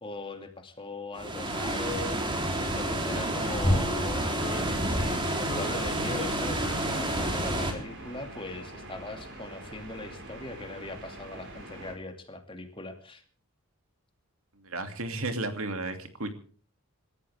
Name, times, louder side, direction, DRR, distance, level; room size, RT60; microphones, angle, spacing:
voice 1, 0.0-5.0 5.3-13.2, left 2 dB, 25° left, 5 dB, 2.4 m, -40 dB
sound 1, 1.2-7.7, right 1 dB, 20° right, 3.5 m, -29 dB
Wind instrument woodwind instrument, 3.0-8.1, left 2 dB, 45° left, 2.9 m, -43 dB
sound 2, 5.9-11.9, right 1 dB, 55° right, 6.2 m, -45 dB
voice 2, 14.6-16.3, right 2 dB, 70° right, 7 dB, 2.6 m, -33 dB
26.5 x 14.0 x 3.5 m, 0.42 s
head